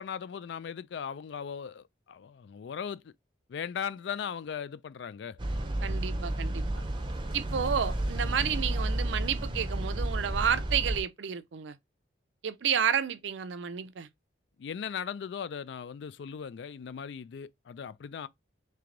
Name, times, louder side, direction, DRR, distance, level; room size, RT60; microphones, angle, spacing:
voice 1, 0.0-3.1 3.5-5.4 14.6-18.3, left 7 dB, 70° left, 0.3 m, -38 dB
sound 1, 5.4-11.0, right 1 dB, 25° right, 0.6 m, -31 dB
voice 2, 5.8-6.6 7.3-11.8 12.4-14.1, right 8 dB, 75° right, 0.5 m, -31 dB
3.4 x 3.2 x 3.8 m
head